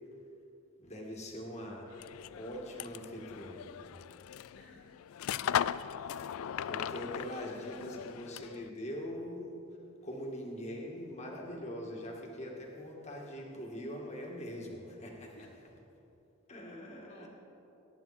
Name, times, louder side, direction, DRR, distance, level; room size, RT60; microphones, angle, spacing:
voice 1, 0.8-1.9 2.3-3.7 6.6-9.5 10.0-15.4 16.5-17.3, equal, 30° left, -1 dB, 2.1 m, -42 dB
sound 1, 1.9-8.7, left 9 dB, 70° left, 0.3 m, -38 dB
voice 2, 4.5-5.0 5.6-6.4 15.3-15.7 17.1-17.3, left 2 dB, 55° left, -3 dB, 1.5 m, -59 dB
22.5 x 10.5 x 4.3 m, 2.9 s
head